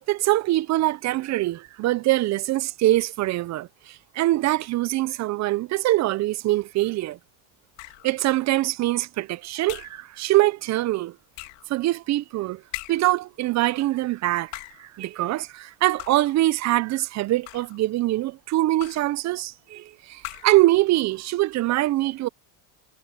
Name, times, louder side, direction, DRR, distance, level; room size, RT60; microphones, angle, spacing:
voice 1, 0.1-7.2 8.0-11.2 11.7-12.6 12.9-14.5 14.8-22.3, right 16 dB, 40° right, 0.4 m, -23 dB
sound 1, 7.8-8.2 9.7-10.1 11.3-11.7 12.7-13.2 14.3-14.9 16.0-16.4 17.2-17.8 18.8-19.2 20.2-20.7, left 22 dB, 80° left, 2.1 m, -40 dB
cardioid pair, 125°, 47 cm